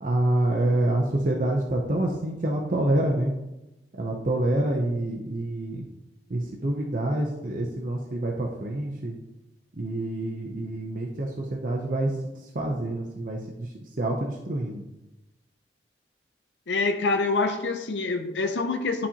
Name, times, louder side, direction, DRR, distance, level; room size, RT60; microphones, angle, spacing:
voice 1, 0.0-3.3 3.9-5.8 6.3-9.1 9.7-14.8, right 1 dB, 50° right, -1 dB, 0.7 m, -27 dB
voice 2, 16.7-19.1, left 3 dB, 90° left, 6 dB, 0.6 m, -26 dB
11.0 x 4.2 x 2.9 m, 0.97 s
head